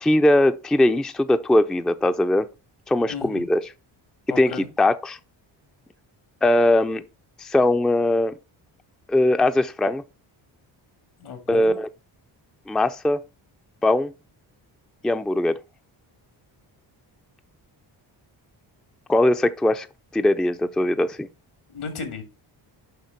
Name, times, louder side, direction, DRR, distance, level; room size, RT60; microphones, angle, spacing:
voice 1, 0.0-2.5 2.9-3.6 4.4-5.2 6.4-7.0 7.4-8.3 9.1-10.0 11.5-11.9 12.7-13.2 13.8-14.1 15.0-15.6 19.1-19.9 20.1-21.3, left 1 dB, ahead, 0.5 m, -20 dB
voice 2, 3.1-3.5 4.3-4.7 11.2-11.8 21.7-22.2, left 5 dB, 75° left, 2.3 m, -34 dB
6.7 x 5.6 x 4.5 m
cardioid pair, 60°, 50 cm